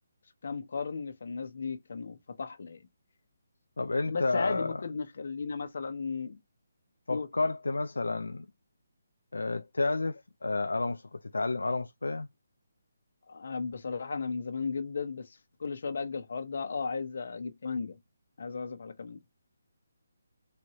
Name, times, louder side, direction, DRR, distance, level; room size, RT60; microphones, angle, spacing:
voice 1, 0.4-2.8 4.1-6.4 7.1-7.3 13.3-18.0 18.4-19.2, left 5 dB, 60° left, 1.0 m, -35 dB
voice 2, 3.8-4.8 7.1-8.5 9.3-12.3, left 3 dB, 85° left, 0.4 m, -31 dB
4.7 x 2.7 x 3.0 m
figure-of-eight pair, 155°, 0 cm